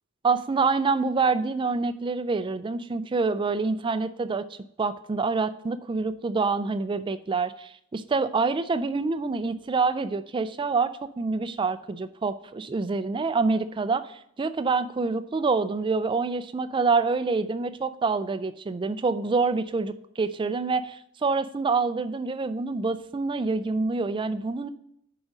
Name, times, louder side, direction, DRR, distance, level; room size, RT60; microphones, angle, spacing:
voice 1, 0.2-24.7, right 4 dB, 20° right, 12 dB, 0.3 m, -26 dB
6.4 x 5.0 x 5.9 m, 0.73 s
head